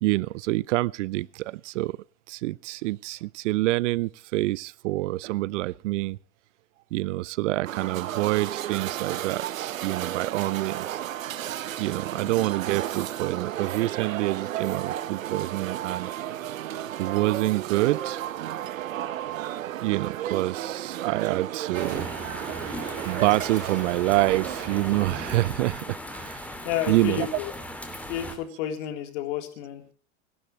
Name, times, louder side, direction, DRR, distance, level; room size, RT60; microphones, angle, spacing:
voice 1, 0.0-1.9 2.3-6.2 6.9-11.0 11.8-16.1 17.0-18.2 19.8-22.1 23.0-26.5 26.9-27.3, right 18 dB, 65° right, 0.7 m, -27 dB
sound 1, 7.6-25.5, right 12 dB, 80° right, 1.3 m, -33 dB
sound 2, 21.7-28.4, equal, 5° left, 3.0 m, -38 dB
voice 2, 26.6-27.5 28.1-29.9, left 10 dB, 60° left, 3.9 m, -31 dB
27.5 x 12.5 x 3.3 m
hypercardioid pair, 105°, 39 cm